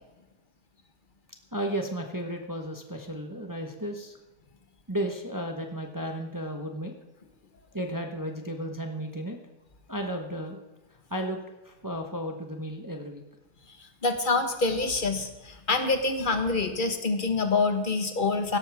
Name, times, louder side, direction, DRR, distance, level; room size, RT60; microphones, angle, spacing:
voice 1, 1.5-4.2 4.9-6.9 7.7-9.4 9.9-10.6 11.1-11.4 11.6-13.2, right 1 dB, 15° right, 3 dB, 1.0 m, -33 dB
voice 2, 14.0-18.6, left 3 dB, 35° left, 7 dB, 1.3 m, -26 dB
17.0 x 12.5 x 3.5 m, 1.1 s
omnidirectional pair, 1.7 m